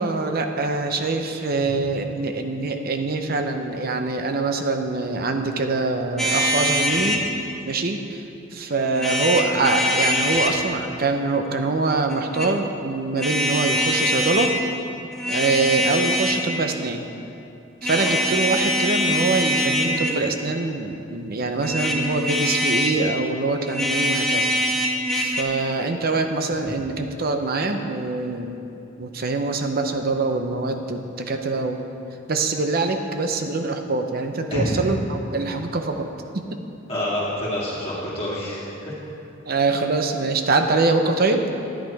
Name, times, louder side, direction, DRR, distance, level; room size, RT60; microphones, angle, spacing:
voice 1, 0.0-7.2 7.6-8.2 8.5-14.5 15.3-17.0 17.8-24.5 25.1-28.6 29.0-31.9 32.3-36.1 36.3-36.6 39.5-41.5, right 3 dB, 50° right, 6 dB, 0.7 m, -24 dB
sound 1, 6.2-7.2 8.9-10.6 12.1-12.5 13.2-14.5 15.1-16.5 17.8-20.3 21.6-23.0 23.7-25.4, equal, ahead, 0.9 m, -23 dB
voice 2, 36.9-38.9, left 1 dB, 30° left, -8 dB, 2.2 m, -27 dB
10.5 x 10.5 x 4.6 m, 2.7 s
head